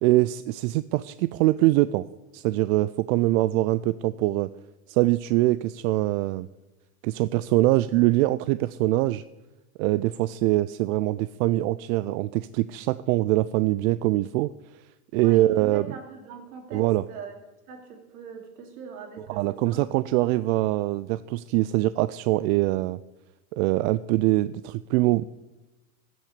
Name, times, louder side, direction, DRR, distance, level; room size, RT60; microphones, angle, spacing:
voice 1, 0.0-2.0 2.3-4.5 4.9-6.5 7.0-9.2 9.8-14.5 15.1-15.9 16.7-17.0 19.3-23.0 23.5-25.2, right 17 dB, 70° right, 15 dB, 0.5 m, -23 dB
voice 2, 15.2-17.3 17.7-19.8, right 5 dB, 85° right, 3 dB, 2.8 m, -41 dB
15.5 x 6.3 x 6.6 m, 1.1 s
supercardioid pair, 125°, 43 cm